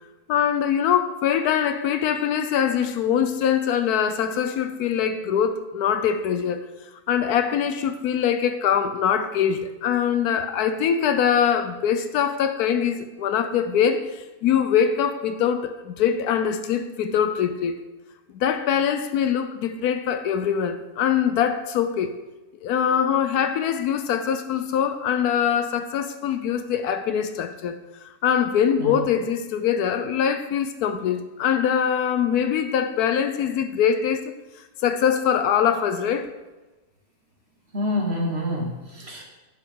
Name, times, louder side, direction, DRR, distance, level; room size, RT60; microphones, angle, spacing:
voice 1, 0.3-6.6 7.1-17.8 18.3-22.1 22.6-34.2 34.8-36.3, left 8 dB, 75° left, 1.1 m, -23 dB
voice 2, 37.7-39.2, left 1 dB, 40° right, 1.8 m, -27 dB
10.5 x 6.9 x 3.7 m
omnidirectional pair, 1.7 m